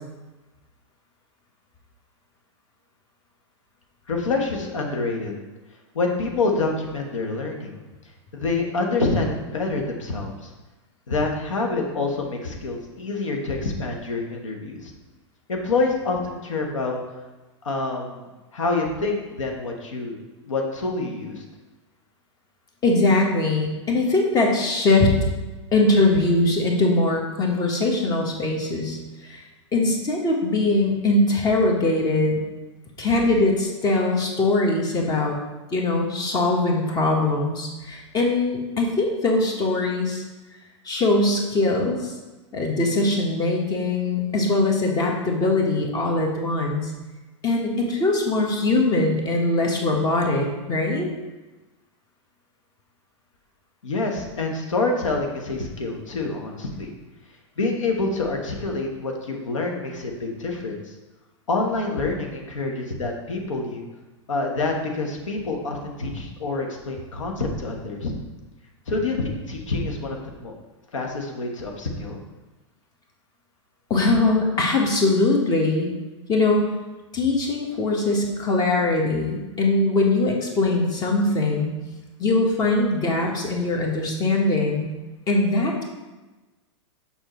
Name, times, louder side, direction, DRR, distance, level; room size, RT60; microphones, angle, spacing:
voice 1, 4.1-5.4 5.9-7.9 8.3-10.5 11.1-14.9 15.5-17.0 17.6-18.2 18.5-20.2 20.5-21.4 53.8-56.9 57.6-60.9 61.5-63.8 64.3-68.1 68.9-70.5 70.9-72.2, left 3 dB, 85° left, 1 dB, 1.2 m, -27 dB
voice 2, 22.8-25.1 25.7-29.0 29.2-29.4 29.7-32.4 33.0-35.3 35.7-40.2 40.8-42.1 42.5-46.9 47.4-51.1 73.9-75.9 76.3-76.7 77.1-81.7 82.2-84.9 85.3-85.8, left 2 dB, 25° left, 1 dB, 1.2 m, -21 dB
6.5 x 5.7 x 3.1 m, 1.2 s
hypercardioid pair, 115°, 16 cm